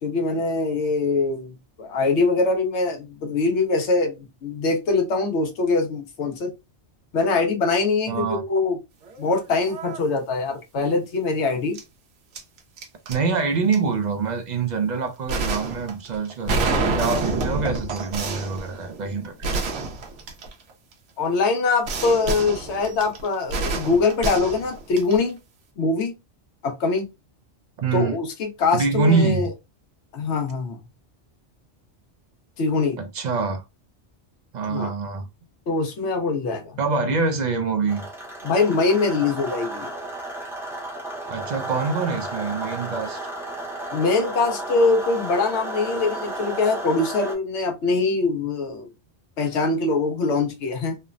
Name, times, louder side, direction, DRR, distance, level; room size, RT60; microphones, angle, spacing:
voice 1, 0.0-6.5 7.1-8.8 9.2-11.8 21.2-25.4 25.8-26.1 26.6-27.1 27.9-29.5 30.1-30.8 32.6-33.0 34.7-34.9 35.7-36.8 38.4-39.9 43.9-48.9 49.4-51.0, left 3 dB, 75° left, 1.0 m, -23 dB
voice 2, 8.1-8.4 13.1-19.6 27.8-28.2 28.7-29.5 33.0-33.6 34.5-35.2 36.8-38.0 41.3-43.2, right 4 dB, 55° right, 0.5 m, -25 dB
sound 1, 9.1-9.3 9.6-10.0 11.7-11.8 12.3-13.2 13.7-13.8 15.3-20.9 21.8-25.3, right 3 dB, 85° right, 1.0 m, -28 dB
sound 2, 37.9-47.4, right 1 dB, 5° right, 0.6 m, -33 dB
3.2 x 2.0 x 2.3 m
omnidirectional pair, 1.2 m